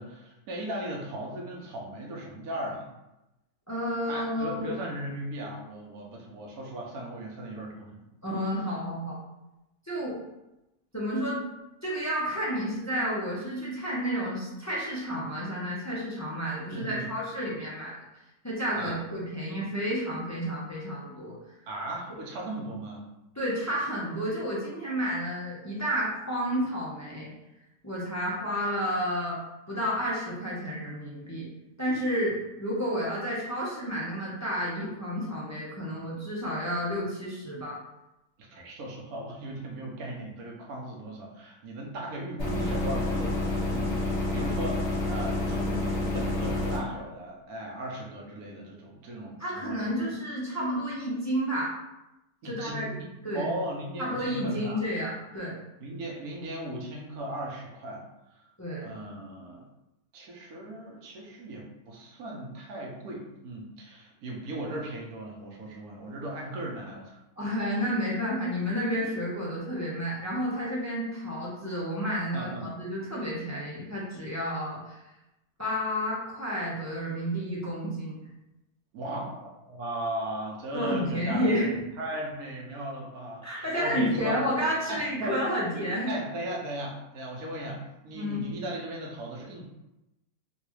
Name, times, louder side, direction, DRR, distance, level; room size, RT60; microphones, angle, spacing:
voice 1, 0.0-2.9 4.1-8.0 16.7-17.2 18.7-19.0 21.7-23.1 38.4-49.9 52.4-54.8 55.8-58.0 58.3-58.4 58.8-59.6 60.1-67.2 72.3-72.7 78.9-84.4 84.9-85.4 86.1-89.6, right 1 dB, 85° right, -1 dB, 1.3 m, -37 dB
voice 2, 3.7-4.7 8.2-9.2 9.8-10.2 10.9-11.4 11.8-18.0 18.4-21.4 23.4-27.3 27.8-29.4 29.7-31.5 31.8-37.8 49.4-51.7 52.4-52.9 53.2-53.5 54.0-55.5 58.6-59.0 67.4-75.0 75.6-78.2 80.7-81.7 83.4-86.1 88.1-88.5, equal, 25° left, -7 dB, 0.3 m, -31 dB
sound 1, 42.4-46.8, left 2 dB, 55° left, 1.4 m, -29 dB
3.9 x 2.3 x 3.0 m, 0.94 s
omnidirectional pair, 1.5 m